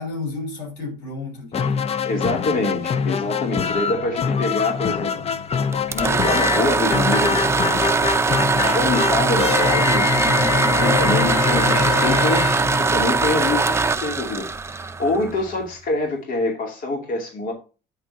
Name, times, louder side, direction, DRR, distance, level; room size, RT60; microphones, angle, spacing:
voice 1, 0.0-1.9 11.0-11.3, left 4 dB, 90° left, 3.2 m, -31 dB
sound 1, 1.5-13.4, left 6 dB, 35° left, 0.5 m, -24 dB
voice 2, 2.0-8.2 8.6-17.5, left 2 dB, 55° left, 2.4 m, -26 dB
sound 2, 5.7-15.5, right 4 dB, 15° right, 0.6 m, -21 dB
8.7 x 3.8 x 4.8 m
cardioid pair, 110°, 17 cm